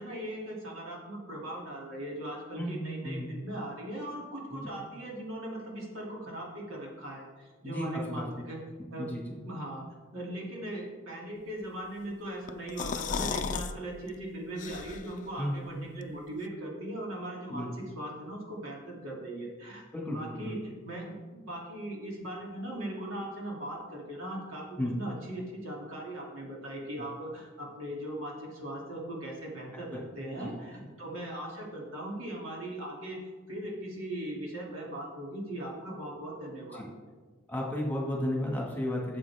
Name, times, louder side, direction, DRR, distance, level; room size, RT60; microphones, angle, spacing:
voice 1, 0.0-8.6 8.9-9.1 9.4-9.9 10.1-17.7 18.0-20.6 20.8-24.6 25.0-33.2 33.5-36.8, right 1 dB, 80° right, -3 dB, 2.8 m, -39 dB
voice 2, 2.6-3.3 4.5-4.7 7.6-8.4 9.0-9.4 15.4-15.7 17.5-17.7 19.9-20.5 24.8-25.0 29.9-30.0 30.3-30.5 30.8-30.9 36.7-36.9 37.5-39.2, left 1 dB, 10° left, -2 dB, 1.8 m, -34 dB
sound 1, 12.5-13.7 14.1-14.2 14.6-15.2, left 5 dB, 40° left, 0.5 m, -34 dB
13.0 x 7.5 x 3.6 m, 1.3 s
head